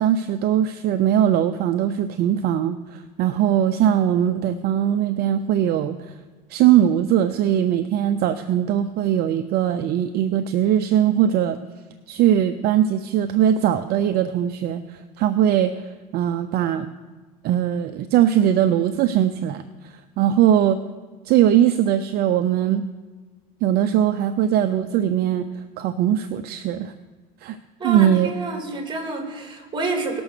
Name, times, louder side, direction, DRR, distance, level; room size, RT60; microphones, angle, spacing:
voice 1, 0.0-6.1 6.5-11.6 12.1-15.8 16.1-16.9 17.4-20.8 21.2-22.8 23.6-26.9 27.4-27.6 27.8-28.3, right 10 dB, 55° right, 10 dB, 0.6 m, -20 dB
voice 2, 27.8-30.2, right 3 dB, 25° right, 3 dB, 3.0 m, -28 dB
18.0 x 6.1 x 6.6 m, 1.4 s
supercardioid pair, 95°, 20 cm